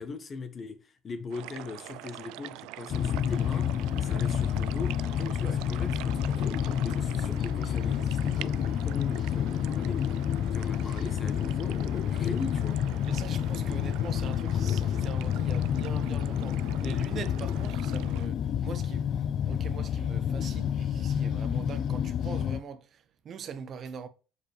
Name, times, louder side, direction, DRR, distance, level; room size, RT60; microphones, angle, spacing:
voice 1, 0.0-3.7 4.0-6.6 6.8-10.0 10.5-12.8, left 4 dB, 35° left, 1.0 m, -40 dB
sound 1, 1.3-18.3, right 17 dB, 80° right, 0.3 m, -44 dB
sound 2, 2.9-22.6, left 9 dB, 50° left, 0.5 m, -29 dB
voice 2, 13.0-24.1, right 6 dB, 45° right, 0.9 m, -42 dB
6.8 x 5.0 x 3.3 m
supercardioid pair, 105°, 0 cm